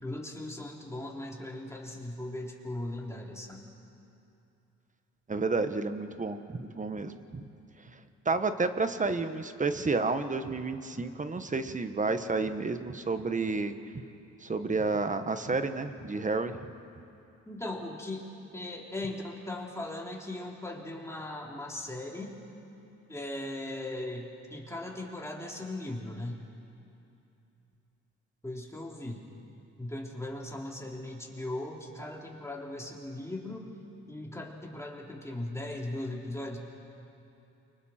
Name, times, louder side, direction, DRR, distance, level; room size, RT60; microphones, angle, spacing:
voice 1, 0.0-3.6 17.5-22.4 23.1-26.4 28.4-29.2 29.8-33.7 34.1-36.6, left 1 dB, 10° left, -1 dB, 3.4 m, -38 dB
voice 2, 5.3-7.5 8.2-14.0 14.4-16.6, right 3 dB, 25° right, 9 dB, 1.2 m, -31 dB
29.0 x 25.0 x 4.4 m, 2.8 s
cardioid pair, 90°, 30 cm